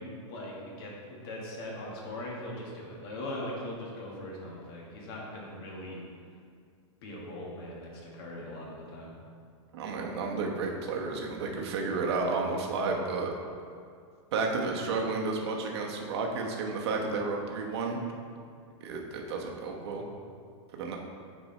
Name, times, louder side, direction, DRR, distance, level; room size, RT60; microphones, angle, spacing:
voice 1, 0.0-6.0 7.0-9.1, left 1 dB, 50° left, -3 dB, 1.6 m, -40 dB
voice 2, 9.7-13.3 14.3-18.0 18.8-20.0 20.7-21.0, right 3 dB, 55° right, 0 dB, 1.0 m, -32 dB
9.1 x 4.4 x 3.2 m, 2.3 s
supercardioid pair, 160°, 16 cm